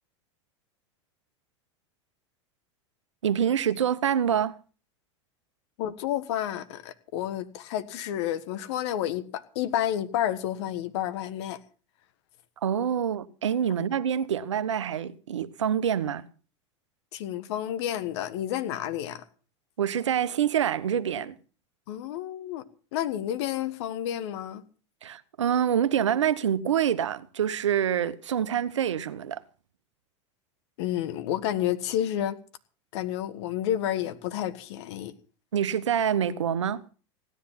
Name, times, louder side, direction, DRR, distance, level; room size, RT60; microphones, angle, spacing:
voice 1, 3.2-4.5 12.6-16.2 19.8-21.4 25.0-29.4 35.5-36.8, right 9 dB, 90° right, 1.0 m, -26 dB
voice 2, 5.8-11.6 17.1-19.2 21.9-22.6 22.9-24.6 30.8-32.4 32.9-35.1, left 11 dB, 70° left, 1.5 m, -30 dB
17.0 x 10.5 x 5.8 m
hypercardioid pair, 95°, 15 cm